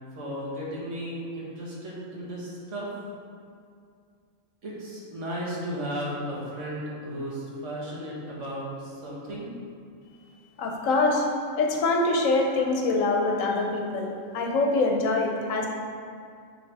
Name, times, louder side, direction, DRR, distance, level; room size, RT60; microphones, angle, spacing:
voice 1, 0.1-2.9 4.6-9.5, equal, 65° right, -6 dB, 1.7 m, -35 dB
voice 2, 10.6-11.2 11.6-15.7, left 3 dB, 85° left, 1 dB, 1.2 m, -24 dB
9.1 x 3.4 x 3.4 m, 2.3 s
omnidirectional pair, 1.3 m